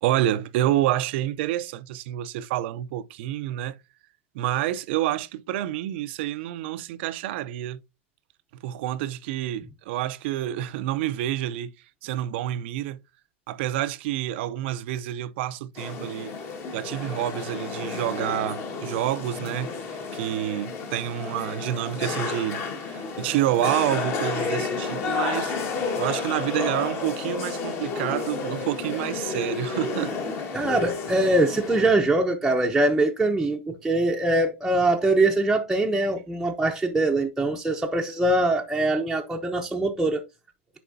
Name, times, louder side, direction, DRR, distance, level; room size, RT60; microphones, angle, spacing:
voice 1, 0.0-3.8 4.3-7.8 8.6-11.7 12.0-13.0 13.5-16.3 16.7-19.7 20.1-25.6 26.0-30.1, right 13 dB, 60° right, 0.6 m, -28 dB
sound 1, 15.8-31.9, left 4 dB, 35° left, 1.7 m, -31 dB
voice 2, 30.5-40.2, right 2 dB, 5° right, 0.8 m, -23 dB
10.0 x 4.3 x 2.7 m
hypercardioid pair, 120°, 7 cm